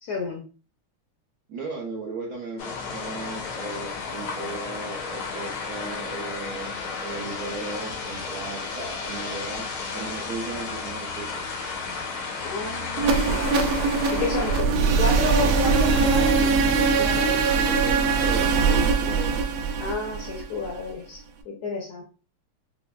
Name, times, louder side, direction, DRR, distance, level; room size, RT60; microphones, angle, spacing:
voice 1, 0.0-0.4 12.4-13.6 14.1-17.5 19.8-22.0, left 3 dB, 65° left, 1.0 m, -31 dB
voice 2, 1.5-9.7 9.9-11.4 17.5-19.5, right 3 dB, 65° right, 1.0 m, -36 dB
sound 1, 2.6-14.6, left 4 dB, 85° left, 1.7 m, -33 dB
sound 2, 13.0-20.9, right 4 dB, 90° right, 1.5 m, -22 dB
5.8 x 2.0 x 2.2 m
omnidirectional pair, 2.3 m